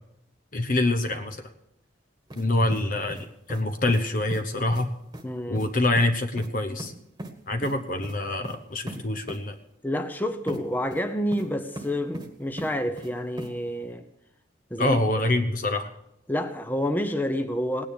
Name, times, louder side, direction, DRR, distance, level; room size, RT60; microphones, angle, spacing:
voice 1, 0.5-1.4 2.4-3.2 3.5-4.9 5.5-6.9 7.5-9.5 14.8-15.9, left 2 dB, 45° left, 7 dB, 0.9 m, -25 dB
sound 1, 2.3-2.5 2.7-3.6 3.9-4.0 4.3-4.4 4.7-4.9 5.1-5.3 5.5-5.7 6.0-6.1 6.4-6.5 6.8-7.3 7.6-7.8 8.0-8.2 8.4-8.6 8.9-9.0 9.3-9.4 10.5-10.6 10.9-11.5 11.8-12.3 12.6-13.1 13.4-13.5, right 1 dB, 20° right, 1.5 m, -38 dB
voice 2, 5.2-5.6 8.9-9.0 9.8-14.1 14.7-15.3 16.3-17.9, equal, 10° left, 7 dB, 0.8 m, -29 dB
18.5 x 9.9 x 6.8 m, 0.81 s
head